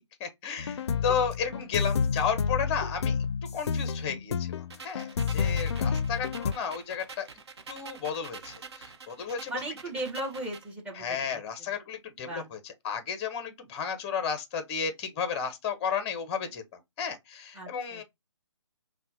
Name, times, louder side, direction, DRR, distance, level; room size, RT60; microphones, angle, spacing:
voice 1, 0.0-3.2 3.5-7.3 7.7-9.6 10.9-16.6 17.0-18.0, left 7 dB, 20° left, 0.6 m, -33 dB
sound 1, 0.6-6.5, left 6 dB, 60° left, 0.4 m, -29 dB
sound 2, 4.7-10.7, right 5 dB, 60° right, 0.8 m, -47 dB
voice 2, 9.5-11.0 11.3-11.4 12.3-12.5 17.5-18.0, right 2 dB, 10° right, 0.9 m, -36 dB
5.4 x 2.1 x 2.6 m
figure-of-eight pair, 145°, 16 cm